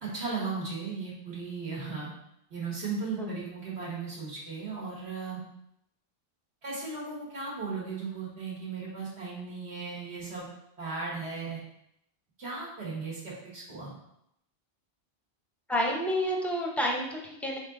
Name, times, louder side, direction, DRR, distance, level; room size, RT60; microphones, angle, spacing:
voice 1, 0.0-2.1 2.5-5.4 6.6-10.5 10.8-11.6 12.4-13.9, right 4 dB, 75° right, -5 dB, 1.7 m, -36 dB
voice 2, 15.7-17.6, equal, ahead, -2 dB, 0.5 m, -29 dB
4.0 x 3.6 x 3.7 m, 0.78 s
omnidirectional pair, 1.1 m